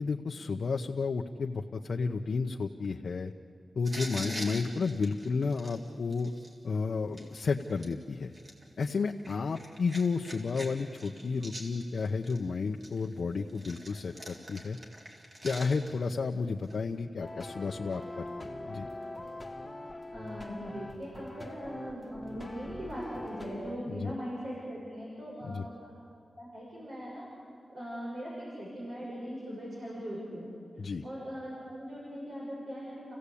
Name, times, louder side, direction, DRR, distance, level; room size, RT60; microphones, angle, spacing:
voice 1, 0.0-3.3 3.8-6.3 6.6-8.3 8.8-14.8 15.4-18.2 18.7-18.9 23.9-24.1 25.4-25.7 30.8-31.0, left 4 dB, 65° left, 2 dB, 0.8 m, -32 dB
sound 1, 3.8-6.5 7.1-7.9 8.3-10.7 10.9-12.4 12.8-16.1 16.6-16.8, equal, 40° right, 3.6 m, -44 dB
voice 2, 4.1-4.5 20.1-26.0 26.3-27.3 27.7-30.5 30.8-33.1, equal, 75° right, -6 dB, 6.6 m, -40 dB
sound 2, 17.2-23.8, left 1 dB, 5° left, 1.7 m, -43 dB
30.0 x 16.5 x 8.5 m, 2.6 s
wide cardioid pair, 155°, 0 cm